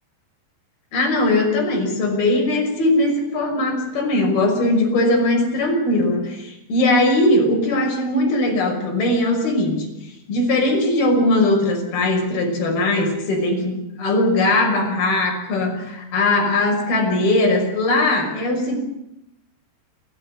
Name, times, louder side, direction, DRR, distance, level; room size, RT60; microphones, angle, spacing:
voice 1, 0.9-18.8, left 2 dB, 55° left, 1 dB, 7.6 m, -20 dB
28.5 x 14.0 x 9.8 m, 0.85 s
omnidirectional pair, 5.3 m